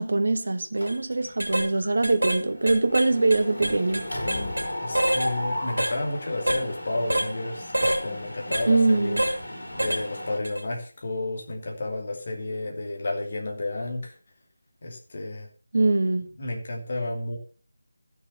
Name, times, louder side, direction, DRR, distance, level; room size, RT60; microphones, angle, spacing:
voice 1, 0.0-4.1 8.7-9.2 15.7-16.3, right 2 dB, 55° right, 1.4 m, -23 dB
Mechanisms, 0.8-1.4 1.7-10.4, left 1 dB, 65° left, 4.2 m, -35 dB
sound 1, 0.8-0.9 1.4-1.7 2.0-2.4 2.7-4.7 4.9-5.3 5.8-6.0 6.5-6.6 7.1-7.3 7.7-8.0 8.5-8.7 9.2-9.4 9.8-10.0 10.4-10.6, right 1 dB, 75° right, 2.2 m, -26 dB
voice 2, 4.8-9.2 9.7-14.1 14.8-15.5 16.4-17.4, left 2 dB, 40° left, 2.7 m, -31 dB
13.0 x 6.7 x 5.6 m
figure-of-eight pair, 160°, 0 cm